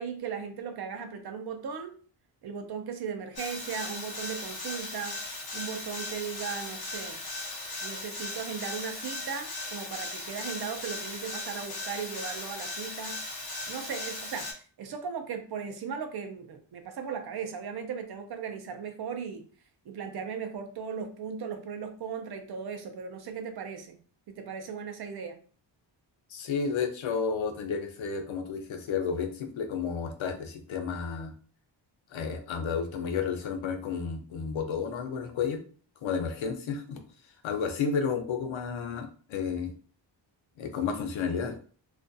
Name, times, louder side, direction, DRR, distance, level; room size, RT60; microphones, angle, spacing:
voice 1, 0.0-1.9 2.4-5.2 5.5-7.2 7.8-13.2 13.7-14.5 14.8-19.4 19.9-24.0 24.3-25.4, right 6 dB, 55° right, 6 dB, 0.5 m, -37 dB
sound 1, 3.4-14.5, left 2 dB, 55° left, 0.8 m, -38 dB
voice 2, 26.3-31.3 32.1-35.6 36.0-37.0 37.4-39.8 40.6-41.6, left 6 dB, 85° left, 5 dB, 0.6 m, -31 dB
2.4 x 2.3 x 2.5 m, 0.41 s
wide cardioid pair, 175°, 46 cm